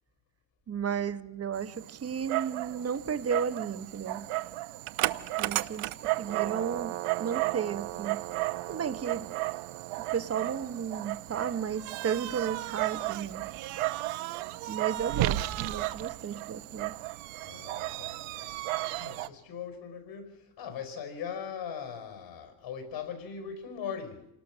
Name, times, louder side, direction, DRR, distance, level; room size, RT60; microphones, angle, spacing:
voice 1, 0.7-4.3 5.4-5.9 6.2-8.2 8.7-9.3 10.1-13.5 14.7-16.9, right 7 dB, 30° right, 1.0 m, -33 dB
Dog, 1.5-19.3, right 17 dB, 80° right, 0.9 m, -34 dB
voice 2, 17.4-24.3, left 7 dB, 65° left, 5.3 m, -40 dB
27.0 x 19.0 x 6.2 m
cardioid pair, 110°, 49 cm